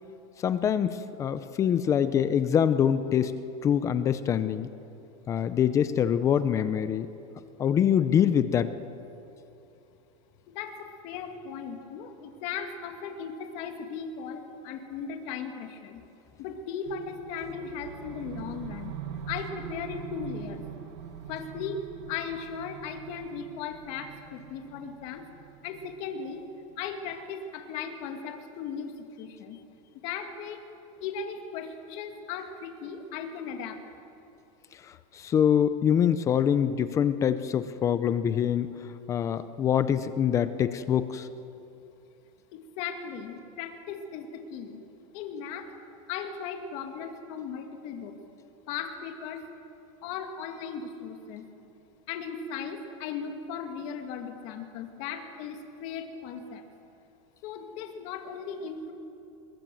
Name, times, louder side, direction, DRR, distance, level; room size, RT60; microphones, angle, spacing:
voice 1, 0.4-3.3 3.6-4.7 5.3-7.1 7.6-8.7 34.8-38.7 39.1-41.3, left 9 dB, 15° left, 12 dB, 0.5 m, -25 dB
voice 2, 10.5-16.0 16.4-19.0 19.3-20.6 21.3-21.8 22.1-25.2 25.6-26.4 26.8-29.6 30.0-30.6 31.0-33.8 42.5-44.8 45.1-45.7 46.1-48.2 48.7-49.4 50.0-51.4 52.1-56.6 57.4-58.9, left 6 dB, 40° left, 5 dB, 2.3 m, -37 dB
sound 1, 16.9-26.9, right 10 dB, 50° right, 1.4 m, -43 dB
25.0 x 22.0 x 7.7 m, 2.8 s
supercardioid pair, 170°, 18 cm